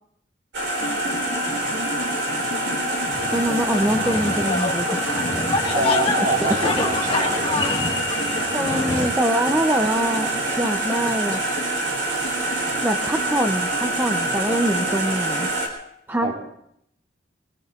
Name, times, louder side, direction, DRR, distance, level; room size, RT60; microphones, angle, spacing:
sound 1, 0.5-15.7, right 2 dB, 80° right, 3.9 m, -26 dB
sound 2, 0.8-15.6, left 1 dB, 75° left, 1.6 m, -34 dB
sound 3, 3.1-9.1, left 3 dB, 30° left, 1.7 m, -27 dB
voice 1, 3.3-5.2 6.4-6.5 8.5-11.4 12.8-15.5 16.1-16.3, right 1 dB, 10° right, 4 dB, 0.6 m, -24 dB
voice 2, 5.7-8.3 16.2-16.3, right 1 dB, 45° right, -2 dB, 4.4 m, -27 dB
24.5 x 21.0 x 2.5 m, 0.74 s
head